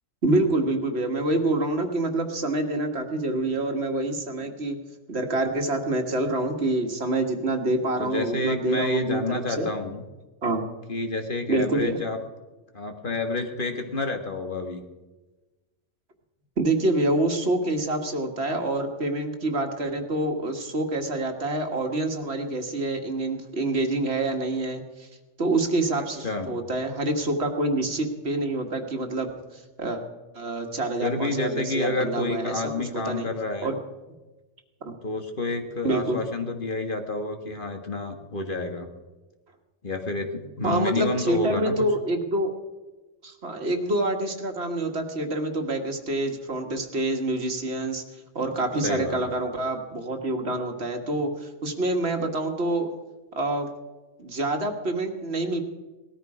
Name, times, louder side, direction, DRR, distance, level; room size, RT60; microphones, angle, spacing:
voice 1, 0.2-4.8 5.1-9.7 10.4-10.6 11.5-12.0 16.6-25.1 25.4-30.0 30.3-33.3 33.6-33.7 34.9-35.0 35.8-36.2 40.6-42.5 43.2-48.0 48.4-52.9 53.4-53.7 54.2-55.6, right 2 dB, 60° right, 4 dB, 1.8 m, -27 dB
voice 2, 8.0-10.0 10.9-12.2 12.7-14.8 26.0-26.5 31.0-33.7 35.0-38.9 39.8-41.8 48.8-49.2, left 2 dB, 45° left, 4 dB, 1.8 m, -29 dB
19.0 x 14.0 x 4.9 m, 1.2 s
omnidirectional pair, 1.2 m